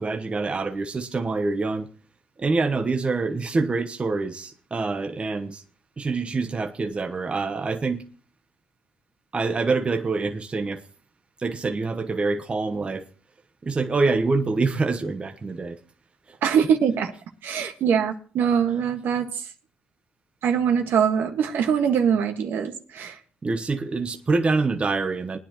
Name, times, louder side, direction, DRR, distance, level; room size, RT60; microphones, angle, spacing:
voice 1, 0.0-1.9 2.4-5.6 6.0-8.0 9.3-10.8 11.4-13.1 13.6-15.8 23.4-25.4, right 3 dB, 30° right, 1.1 m, -25 dB
voice 2, 16.4-17.1 17.4-19.3 20.4-23.2, right 7 dB, 70° right, 1.7 m, -23 dB
20.5 x 9.8 x 3.0 m
supercardioid pair, 75°, 4 cm